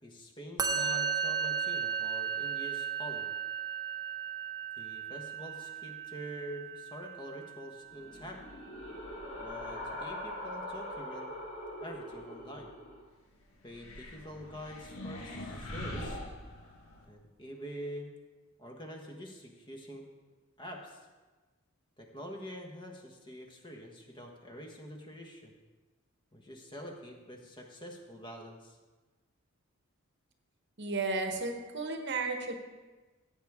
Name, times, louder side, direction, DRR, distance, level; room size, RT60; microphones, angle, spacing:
voice 1, 0.0-3.3 4.8-8.4 9.4-11.3 11.8-12.7 13.6-16.2 17.1-18.1 18.6-20.0 20.6-21.0 22.0-25.5 26.3-28.8, equal, 20° left, 1 dB, 1.3 m, -45 dB
Musical instrument, 0.6-7.9, right 8 dB, 20° right, 0.8 m, -35 dB
sound 1, 7.9-13.0, left 1 dB, 60° left, 2.5 m, -42 dB
sound 2, 13.7-17.0, left 1 dB, 85° left, 1.6 m, -42 dB
voice 2, 30.8-32.5, right 3 dB, 55° right, 5 dB, 1.1 m, -33 dB
15.5 x 8.0 x 3.6 m, 1.3 s
head